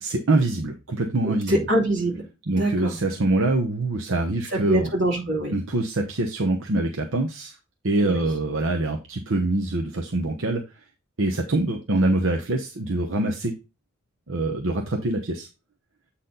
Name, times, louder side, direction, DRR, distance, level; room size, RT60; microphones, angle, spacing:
voice 1, 0.0-1.6 2.5-4.9 5.5-7.5 7.8-10.6 11.2-13.5 14.3-15.5, right 2 dB, 80° right, 3 dB, 0.9 m, -24 dB
voice 2, 1.2-2.2 2.6-2.9 4.7-5.5 8.0-8.1, right 1 dB, 60° right, -2 dB, 3.0 m, -24 dB
8.2 x 4.2 x 3.9 m, 0.28 s
head